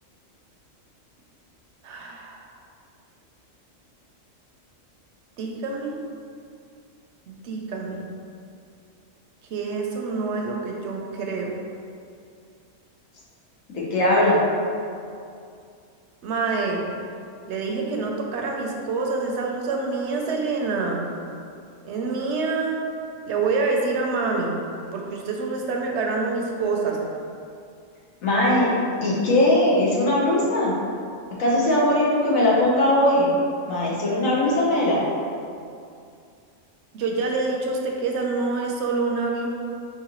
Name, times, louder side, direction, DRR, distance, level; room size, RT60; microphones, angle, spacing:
voice 1, 1.8-2.4 5.4-6.0 7.3-8.0 9.5-11.5 16.2-16.8 17.5-21.0 21.8-22.8 23.3-24.5 24.9-27.0 36.9-39.5, right 4 dB, 65° right, 0 dB, 0.8 m, -26 dB
voice 2, 13.7-14.4 28.2-28.7 29.0-30.7 31.4-33.3 33.7-35.0, left 1 dB, 85° left, -5 dB, 1.3 m, -20 dB
4.8 x 2.9 x 2.9 m, 2.4 s
omnidirectional pair, 1.4 m